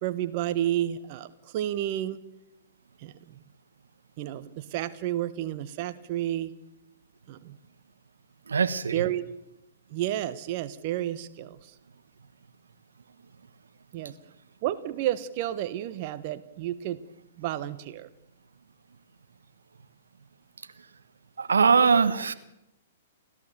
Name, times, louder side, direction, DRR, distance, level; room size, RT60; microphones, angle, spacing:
voice 1, 0.0-2.2 3.0-3.4 4.2-6.5 7.3-7.6 8.9-9.2 9.9-11.7 13.9-14.2 14.6-17.0 17.4-18.1, right 13 dB, 45° right, 13 dB, 1.2 m, -31 dB
voice 2, 8.5-9.0 21.4-22.3, right 5 dB, 75° right, 11 dB, 1.4 m, -21 dB
30.0 x 14.0 x 7.0 m, 0.86 s
figure-of-eight pair, 115°, 0 cm